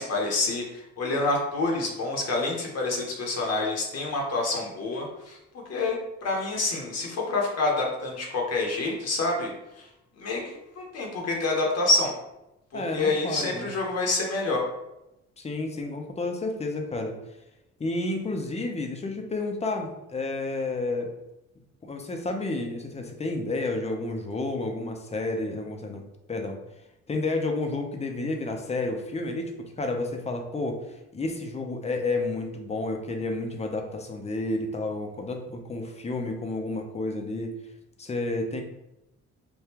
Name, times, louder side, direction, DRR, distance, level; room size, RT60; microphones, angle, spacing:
voice 1, 0.0-9.9 10.2-10.4 10.8-12.1 12.7-14.7, left 2 dB, 55° left, 0 dB, 0.8 m, -27 dB
voice 2, 12.7-13.7 15.4-17.1 17.8-21.1 21.8-26.6 27.1-30.8 31.1-37.6 38.0-38.6, left 2 dB, 20° left, 3 dB, 0.5 m, -31 dB
3.5 x 2.3 x 2.8 m, 0.91 s
cardioid pair, 90°, 30 cm